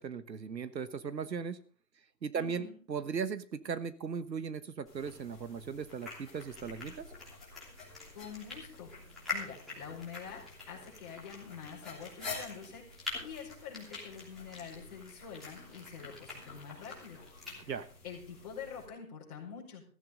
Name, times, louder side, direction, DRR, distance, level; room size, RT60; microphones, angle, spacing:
voice 1, 0.0-1.6 2.2-7.1 17.7-17.9, right 6 dB, 80° right, 13 dB, 1.4 m, -37 dB
voice 2, 2.3-2.8 8.1-17.2 17.6-17.7 18.0-19.8, left 7 dB, 25° left, -4 dB, 5.1 m, -46 dB
sound 1, 4.9-18.9, left 3 dB, ahead, 3.3 m, -45 dB
15.0 x 15.0 x 3.8 m, 0.43 s
hypercardioid pair, 170°, 50 cm